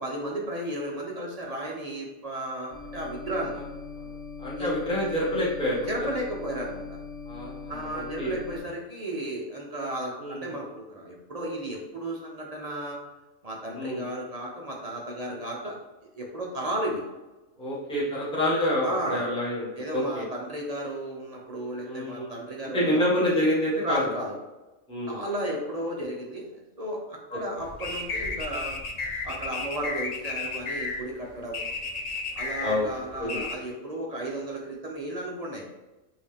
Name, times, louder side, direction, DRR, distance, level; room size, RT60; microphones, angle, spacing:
voice 1, 0.0-3.6 4.6-4.7 5.9-6.9 7.7-13.0 13.4-15.8 16.1-17.0 18.8-19.2 19.8-23.0 23.8-24.3 25.1-26.5 26.8-28.7 29.2-31.8 32.4-35.7, right 1 dB, 40° right, -2 dB, 0.6 m, -34 dB
sound 1, 2.7-8.6, left 4 dB, 30° left, 1.4 m, -41 dB
voice 2, 4.4-6.1 7.2-8.3 10.2-10.5 13.7-14.0 17.6-20.3 21.8-22.4 22.7-24.0 24.9-25.2 32.6-32.9 33.2-33.4, left 1 dB, 5° left, -8 dB, 1.2 m, -27 dB
sound 2, 27.6-33.6, left 3 dB, 75° left, 0.3 m, -33 dB
5.3 x 2.8 x 3.3 m, 1.1 s
omnidirectional pair, 1.4 m